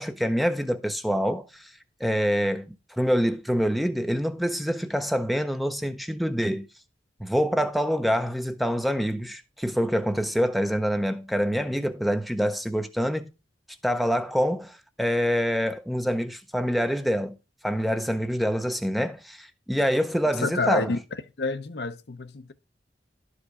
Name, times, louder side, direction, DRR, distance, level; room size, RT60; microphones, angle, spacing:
voice 1, 0.0-1.7 2.0-6.7 7.2-13.3 13.8-17.4 17.6-20.9, equal, ahead, 0.5 m, -26 dB
voice 2, 20.4-21.0 21.4-22.5, left 3 dB, 60° left, 0.6 m, -28 dB
11.5 x 5.0 x 4.8 m
head